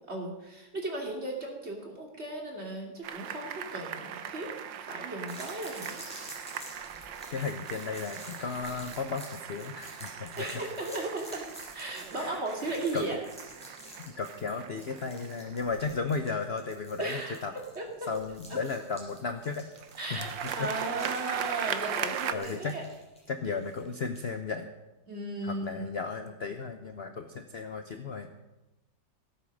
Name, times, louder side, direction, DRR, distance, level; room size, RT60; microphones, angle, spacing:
voice 1, 0.1-4.5 4.8-6.1 10.4-11.4 11.7-13.2 17.0-17.4 17.7-18.1 18.5-18.6 20.0-20.3 20.5-22.8 25.1-25.8, right 2 dB, 35° right, 0 dB, 2.9 m, -36 dB
sound 1, 3.0-17.1 19.8-22.3, right 9 dB, 80° right, 1.5 m, -39 dB
sound 2, 5.3-24.3, equal, 5° left, 5.8 m, -50 dB
voice 2, 7.3-10.5 11.8-12.4 12.9-13.0 14.1-17.5 18.1-19.7 20.1-20.7 22.3-22.8 23.3-24.7 25.4-28.3, left 4 dB, 45° left, 7 dB, 0.8 m, -35 dB
17.0 x 9.1 x 6.4 m, 1.0 s
omnidirectional pair, 2.0 m